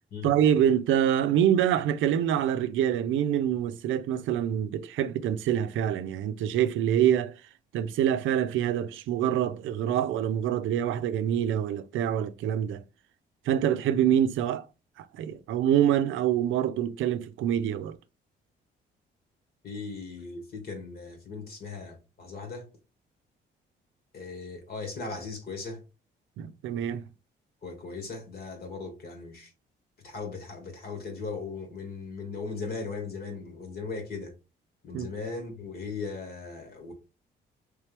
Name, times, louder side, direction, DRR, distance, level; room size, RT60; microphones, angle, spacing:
voice 1, 0.2-7.3 7.7-12.8 13.5-14.7 15.2-18.0 26.4-27.0 34.9-35.1, right 10 dB, 80° right, 0.5 m, -25 dB
voice 2, 19.6-22.7 24.1-25.8 27.6-29.5 30.0-34.3 34.8-36.9, left 4 dB, 50° left, 1.5 m, -38 dB
3.3 x 3.2 x 3.3 m
cardioid pair, 90°, 20 cm